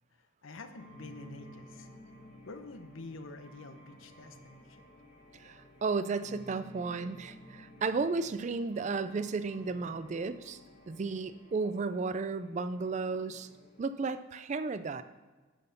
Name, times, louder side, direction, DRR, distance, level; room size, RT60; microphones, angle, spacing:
voice 1, 0.1-1.9 2.5-4.9, left 3 dB, 75° left, 8 dB, 0.8 m, -48 dB
sound 1, 0.6-13.9, equal, 50° left, 1.6 m, -54 dB
voice 2, 5.3-10.6 10.9-13.5 13.8-15.0, right 4 dB, 35° right, 12 dB, 0.3 m, -33 dB
11.0 x 4.2 x 6.6 m, 1.3 s
head